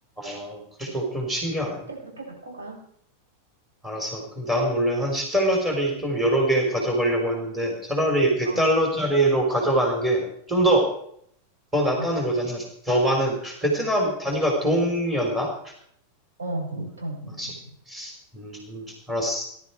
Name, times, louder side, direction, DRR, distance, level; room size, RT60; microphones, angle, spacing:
voice 1, 0.2-1.8 3.8-10.9 11.7-15.7 17.4-17.5 17.9-19.4, right 1 dB, 15° right, 0 dB, 5.0 m, -24 dB
voice 2, 1.6-2.8 8.4-8.7 12.0-12.1 16.4-17.6, right 2 dB, 70° right, -2 dB, 7.3 m, -35 dB
19.5 x 13.0 x 4.8 m, 0.68 s
figure-of-eight pair, 90°, 0 cm